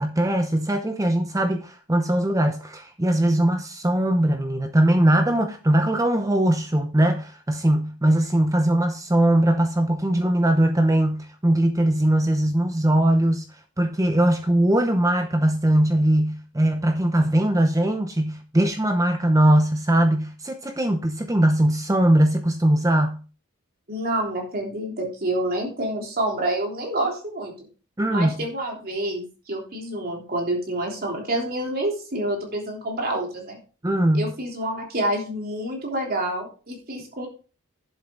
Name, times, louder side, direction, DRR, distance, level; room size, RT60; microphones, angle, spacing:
voice 1, 0.0-13.4 13.8-23.2 28.0-28.4 33.8-34.3, right 1 dB, 15° right, 0.7 m, -20 dB
voice 2, 23.9-27.5 28.1-33.6 34.1-37.3, right 1 dB, 45° right, 3.4 m, -28 dB
11.0 x 7.7 x 3.8 m
head